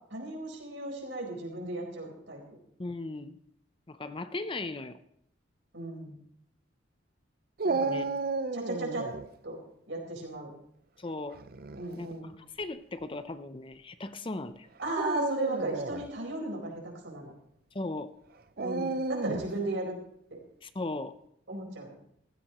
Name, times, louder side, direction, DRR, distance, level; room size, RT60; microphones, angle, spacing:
voice 1, 0.1-2.4 5.7-6.1 7.6-8.1 8.5-9.1 9.4-9.6 9.9-10.5 11.7-12.3 14.8-17.3 18.6-20.0 20.3-20.4 21.5-21.9, right 2 dB, 75° right, 0 dB, 4.5 m, -35 dB
voice 2, 2.8-3.4 3.9-5.0 7.9-8.1 11.0-11.4 12.0-14.7 17.7-18.1 20.6-21.1, left 2 dB, 25° left, 11 dB, 0.6 m, -37 dB
Dog, 7.6-9.3 11.3-11.8 12.6-12.7 14.9-16.1 18.6-19.6, right 3 dB, 50° right, 0.6 m, -32 dB
15.5 x 14.5 x 3.0 m, 0.72 s
head